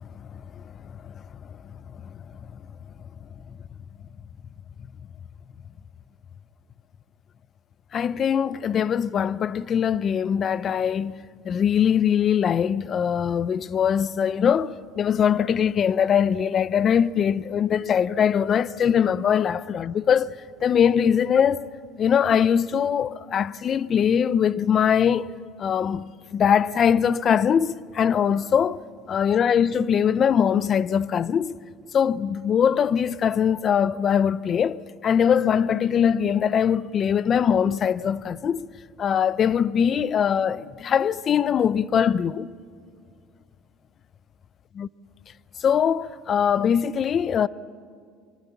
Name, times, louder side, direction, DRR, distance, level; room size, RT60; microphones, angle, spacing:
voice 1, 0.0-0.6 1.0-1.1 7.9-21.7 22.0-25.3 25.6-28.8 29.1-31.6 31.9-38.7 39.0-42.5 44.8-44.9 45.6-47.5, left 8 dB, 40° left, 0.6 m, -22 dB
25.0 x 24.0 x 7.2 m
cardioid pair, 125°, 0 cm